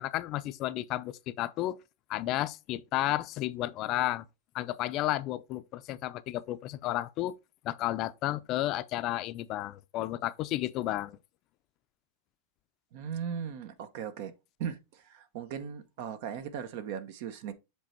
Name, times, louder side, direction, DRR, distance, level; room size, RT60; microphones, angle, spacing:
voice 1, 0.0-1.8 2.1-4.2 4.5-7.3 7.6-11.2, left 15 dB, 40° left, 0.5 m, -32 dB
voice 2, 12.9-14.3 14.6-17.5, right 8 dB, 60° right, 0.9 m, -38 dB
7.5 x 3.3 x 4.4 m
supercardioid pair, 145°, 0 cm